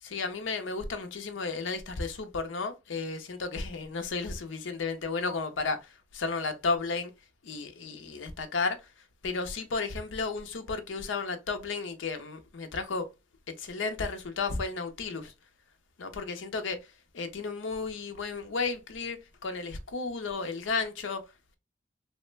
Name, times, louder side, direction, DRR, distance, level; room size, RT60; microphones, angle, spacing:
voice 1, 0.0-7.1 7.4-8.8 9.2-13.1 13.5-15.3 16.0-21.2, left 4 dB, 80° left, 0.6 m, -33 dB
3.1 x 2.1 x 3.1 m
head